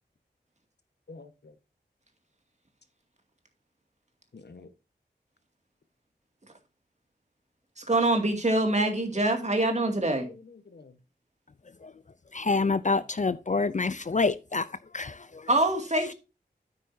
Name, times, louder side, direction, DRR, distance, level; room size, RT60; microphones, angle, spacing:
voice 1, 1.1-1.5 4.3-4.7 8.7-11.0, left 4 dB, 75° left, 1.3 m, -48 dB
voice 2, 7.8-10.3 15.5-16.1, right 2 dB, 40° right, 2.3 m, -25 dB
voice 3, 12.3-14.7 14.9-15.5, left 4 dB, 45° left, 0.5 m, -27 dB
9.4 x 8.6 x 2.7 m
wide cardioid pair, 75°, 17 cm